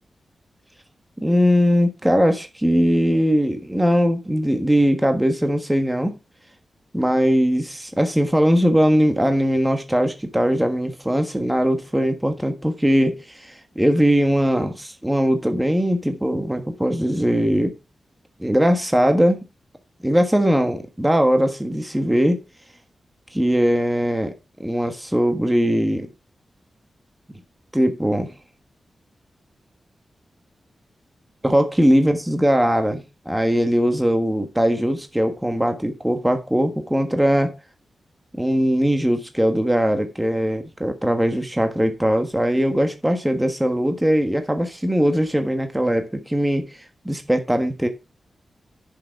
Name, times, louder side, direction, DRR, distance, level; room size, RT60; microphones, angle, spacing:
voice 1, 1.2-6.2 6.9-17.7 18.4-19.4 20.0-22.4 23.3-24.3 24.6-26.1 27.7-28.3 31.4-37.5 38.3-46.8 47.0-47.9, equal, 5° right, 1.4 m, -20 dB
10.5 x 6.6 x 4.6 m
wide cardioid pair, 155°, 0 cm